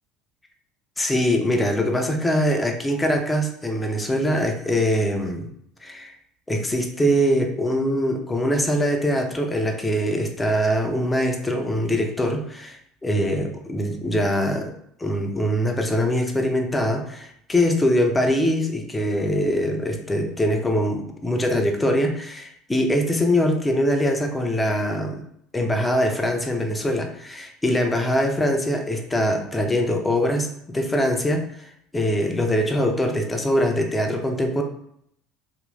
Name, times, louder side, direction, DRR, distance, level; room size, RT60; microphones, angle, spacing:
voice 1, 1.0-5.5 5.8-6.1 6.5-14.7 15.0-25.2 25.5-34.6, equal, 15° left, 3 dB, 0.6 m, -23 dB
3.0 x 2.5 x 3.1 m, 0.71 s
figure-of-eight pair, 65°, 0 cm